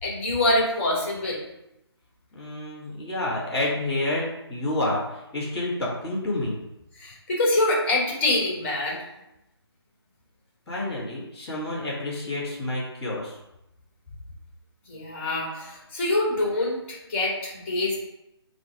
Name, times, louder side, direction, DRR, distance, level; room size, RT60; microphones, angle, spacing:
voice 1, 0.0-1.4 7.0-9.0 14.9-18.0, left 2 dB, 30° left, -3 dB, 2.3 m, -25 dB
voice 2, 2.3-6.6 10.7-13.4, left 1 dB, 5° left, -14 dB, 1.9 m, -29 dB
8.0 x 3.4 x 5.0 m, 0.87 s
figure-of-eight pair, 155°, 14 cm